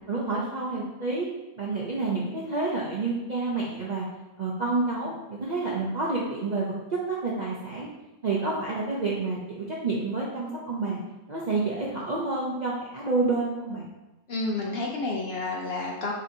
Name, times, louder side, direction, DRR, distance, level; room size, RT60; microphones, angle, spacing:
voice 1, 0.1-1.3 1.6-4.1 4.4-6.7 7.1-7.9 8.2-11.0 11.3-13.9, right 3 dB, 55° right, -5 dB, 0.5 m, -29 dB
voice 2, 14.3-16.1, left 2 dB, 60° left, -1 dB, 0.7 m, -30 dB
6.5 x 2.8 x 2.7 m, 1.0 s
omnidirectional pair, 1.5 m